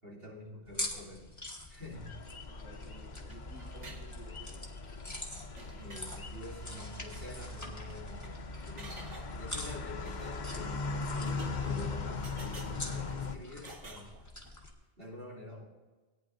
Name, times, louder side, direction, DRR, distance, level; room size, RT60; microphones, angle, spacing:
voice 1, 0.0-1.3 1.7-2.2 5.6-9.0 9.4-14.1 15.0-15.6, left 1 dB, 55° right, -5 dB, 3.2 m, -47 dB
sound 1, 0.6-14.7, left 1 dB, 15° left, 1.5 m, -46 dB
sound 2, 1.9-13.4, left 3 dB, 45° left, 0.8 m, -40 dB
voice 2, 2.4-4.8 15.5-15.6, equal, 10° right, -6 dB, 1.7 m, -54 dB
sound 3, 3.1-4.1 4.3-4.9 5.2-5.3 5.6-6.1 7.1-7.2 7.5-7.6 7.8-8.3 8.8-9.5 10.1-10.6 11.3-11.9 12.2-13.2 13.6-14.6, right 2 dB, 85° right, 1.8 m, -51 dB
18.0 x 9.8 x 2.7 m, 1.3 s
omnidirectional pair, 1.2 m